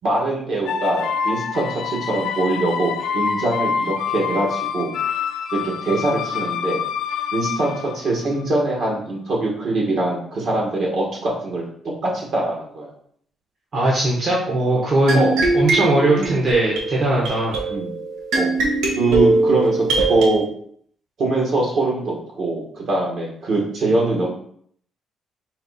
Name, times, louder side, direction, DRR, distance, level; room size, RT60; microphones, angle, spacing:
voice 1, 0.0-4.9 5.5-6.8 7.3-12.9 14.7-14.8 15.1-15.4 16.2-16.4 17.7-17.9 18.3-18.5 19.0-20.4 21.2-24.3, right 2 dB, 65° right, -2 dB, 1.7 m, -23 dB
sound 1, 0.7-8.6, left 7 dB, 75° left, 0.3 m, -26 dB
voice 2, 13.7-15.2 15.5-17.6, right 1 dB, 45° right, -3 dB, 1.1 m, -19 dB
sound 2, 15.1-20.3, right 3 dB, 90° right, 1.0 m, -21 dB
4.2 x 2.5 x 4.1 m, 0.62 s
cardioid pair, 90°, 0 cm